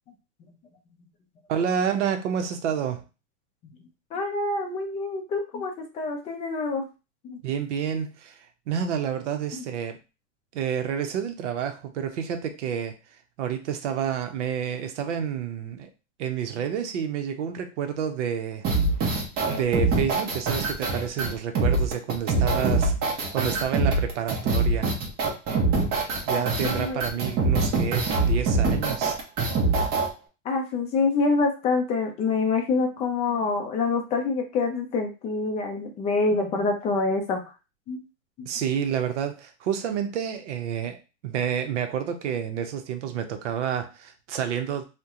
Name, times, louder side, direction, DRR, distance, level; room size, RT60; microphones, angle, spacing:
voice 1, 1.5-3.0 7.4-10.0 10.5-12.9 13.4-15.9 16.2-18.6 19.5-22.9 23.3-24.9 26.2-29.2 38.5-44.8, right 8 dB, 65° right, 7 dB, 0.7 m, -29 dB
voice 2, 4.1-6.9 7.2-7.4 9.6-9.7 26.4-27.0 30.4-37.4 37.9-38.0 38.4-38.5, left 3 dB, 15° left, 3 dB, 0.4 m, -26 dB
sound 1, 18.6-30.1, right 3 dB, 25° right, 0.7 m, -24 dB
2.7 x 2.2 x 3.6 m, 0.30 s
hypercardioid pair, 135°, 39 cm